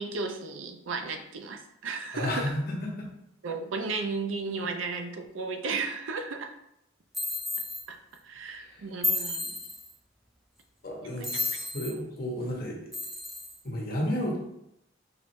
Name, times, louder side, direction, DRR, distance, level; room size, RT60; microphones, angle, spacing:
voice 1, 0.0-2.5 3.4-6.5 7.9-8.0 8.2-9.6 11.2-11.4, right 4 dB, 85° right, 5 dB, 0.5 m, -34 dB
voice 2, 2.1-3.1 8.6-8.7 10.8-12.8 13.6-14.4, left 1 dB, 50° left, -2 dB, 1.0 m, -32 dB
sound 1, 7.1-7.8 9.0-9.9 11.2-11.9 12.9-13.6, left 2 dB, ahead, 0.5 m, -32 dB
4.9 x 2.5 x 3.2 m, 0.80 s
head